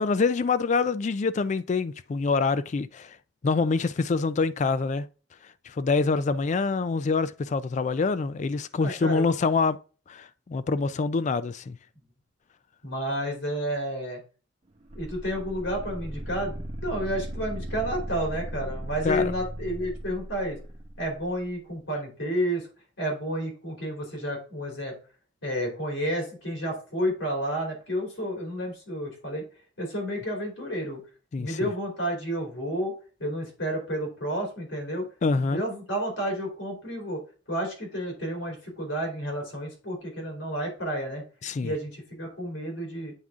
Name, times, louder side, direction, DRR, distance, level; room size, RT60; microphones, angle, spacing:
voice 1, 0.0-3.2 3.4-5.1 5.7-9.8 10.1-11.8 19.0-19.3 31.3-31.7 35.2-35.6 41.4-41.7, left 4 dB, 40° left, 0.3 m, -25 dB
voice 2, 8.8-9.3 12.8-14.2 14.9-20.6 21.0-22.7 23.0-24.9 25.4-29.4 29.8-31.0 31.4-32.9 33.2-35.1 35.5-41.2 41.6-43.1, equal, 85° left, 3.0 m, -31 dB
sound 1, 14.9-21.1, equal, 30° right, 1.0 m, -37 dB
8.8 x 3.7 x 3.5 m
head